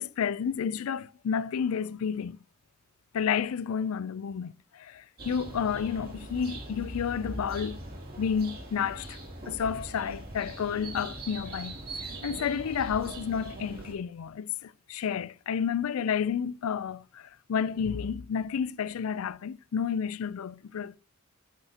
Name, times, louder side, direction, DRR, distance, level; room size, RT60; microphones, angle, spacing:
voice 1, 0.0-2.4 3.1-7.8 8.2-9.2 9.5-21.0, left 7 dB, 75° left, 0.4 m, -31 dB
sound 1, 5.2-13.9, right 2 dB, 45° right, 2.7 m, -41 dB
8.9 x 8.2 x 2.8 m
head